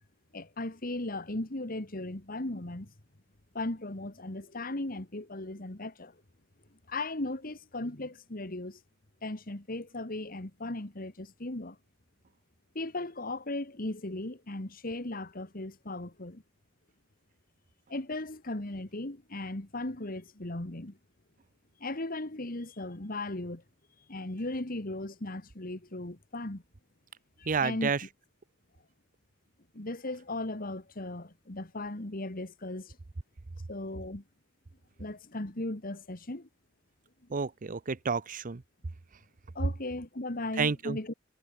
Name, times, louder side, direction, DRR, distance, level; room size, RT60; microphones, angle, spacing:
voice 1, 0.3-2.9 3.5-6.2 6.9-8.8 9.2-11.8 12.8-16.4 17.9-21.0 21.8-23.6 24.1-26.6 27.4-27.9 29.7-33.0 33.7-34.2 35.0-36.5 39.6-41.1, left 2 dB, 45° left, 2.0 m, -37 dB
voice 2, 27.5-28.0 37.3-38.6 40.6-41.0, right 5 dB, 45° right, 0.7 m, -30 dB
head